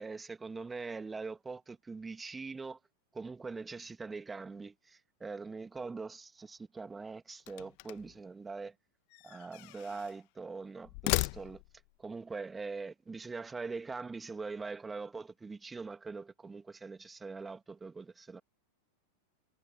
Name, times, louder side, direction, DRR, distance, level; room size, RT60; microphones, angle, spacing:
voice 1, 0.0-2.8 3.1-8.7 9.2-11.6 12.0-18.4, right 4 dB, 10° right, 2.5 m, -42 dB
sound 1, 7.4-8.2 9.1-10.2 10.8-11.9, left 36 dB, 45° left, 1.5 m, -36 dB
figure-of-eight pair, 90°, 0 cm